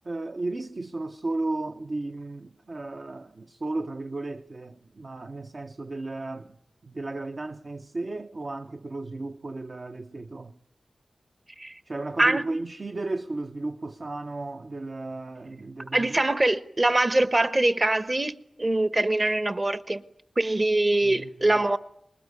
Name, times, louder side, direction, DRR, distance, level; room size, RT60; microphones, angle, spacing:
voice 1, 0.0-6.6 6.8-10.6 11.9-16.2 21.0-21.6, right 2 dB, 55° right, 0.9 m, -34 dB
voice 2, 15.9-20.0 20.4-21.8, right 2 dB, 35° right, 1.2 m, -23 dB
24.0 x 20.5 x 9.6 m
cardioid pair, 50°, 0 cm